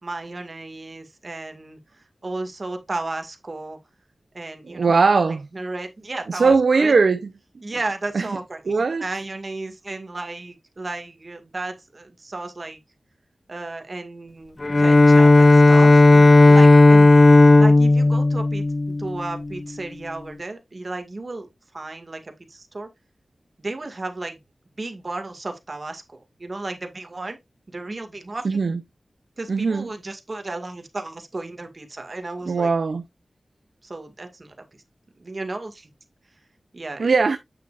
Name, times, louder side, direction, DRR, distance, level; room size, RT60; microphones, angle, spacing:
voice 1, 0.0-3.8 4.3-6.9 7.6-12.8 13.5-17.1 17.6-21.5 21.7-22.9 23.6-24.4 24.8-27.4 27.7-28.6 29.4-32.7 33.8-34.6 35.2-35.9 36.7-37.1, right 2 dB, 50° right, 2.0 m, -34 dB
voice 2, 4.7-5.5 6.3-7.3 8.1-8.3 8.7-9.0 28.4-28.8 29.5-29.9 32.5-33.0 37.0-37.4, right 4 dB, 85° right, 0.7 m, -19 dB
Bowed string instrument, 14.6-19.6, left 2 dB, 40° left, 0.5 m, -13 dB
8.9 x 6.8 x 2.5 m
wide cardioid pair, 75°, 0 cm